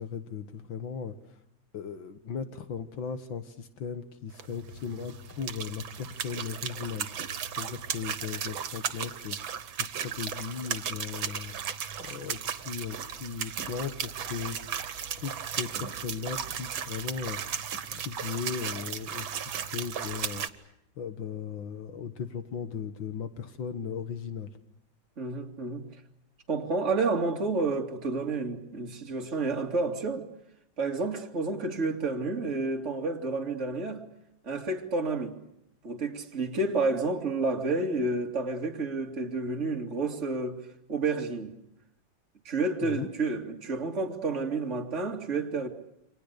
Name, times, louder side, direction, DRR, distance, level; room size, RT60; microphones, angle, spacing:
voice 1, 0.0-1.4 1.7-11.6 12.0-14.7 15.2-17.6 17.9-20.7 21.0-24.5 42.8-43.1, left 6 dB, 80° left, 2.2 m, -37 dB
sound 1, 4.3-20.5, right 8 dB, 85° right, 2.2 m, -36 dB
voice 2, 25.2-25.9 26.5-30.3 30.8-34.0 34.4-35.4 35.8-40.6 40.9-41.5 42.4-45.7, right 3 dB, 35° right, 2.8 m, -30 dB
29.0 x 25.5 x 6.7 m
omnidirectional pair, 2.1 m